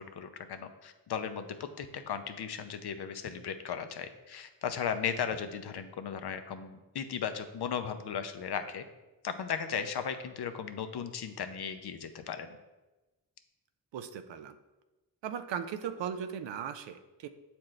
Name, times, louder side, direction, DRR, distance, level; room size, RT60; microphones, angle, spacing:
voice 1, 0.0-8.8 9.2-12.6, left 7 dB, 60° left, 9 dB, 0.7 m, -36 dB
voice 2, 13.9-14.6 15.2-17.3, right 8 dB, 75° right, 9 dB, 0.5 m, -38 dB
7.4 x 4.3 x 3.2 m, 1.1 s
supercardioid pair, 45°, 44 cm